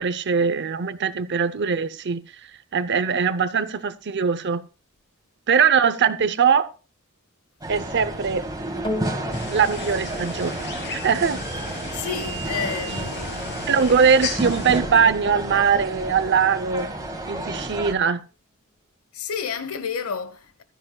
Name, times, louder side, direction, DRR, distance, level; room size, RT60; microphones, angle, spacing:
voice 1, 0.0-4.6 5.5-6.7 7.7-8.5 9.5-10.6 10.9-11.4 13.7-16.9 17.3-18.2, right 6 dB, 55° right, 0.7 m, -21 dB
sound 1, 7.6-17.9, right 2 dB, 20° right, 1.9 m, -31 dB
sound 2, 8.8-17.4 18.1-18.2, left 1 dB, 25° left, 1.5 m, -40 dB
sound 3, 9.3-14.8, left 3 dB, 55° left, 3.3 m, -35 dB
voice 2, 11.9-13.9 19.1-20.6, left 6 dB, 80° left, 1.1 m, -31 dB
15.0 x 13.0 x 2.3 m
head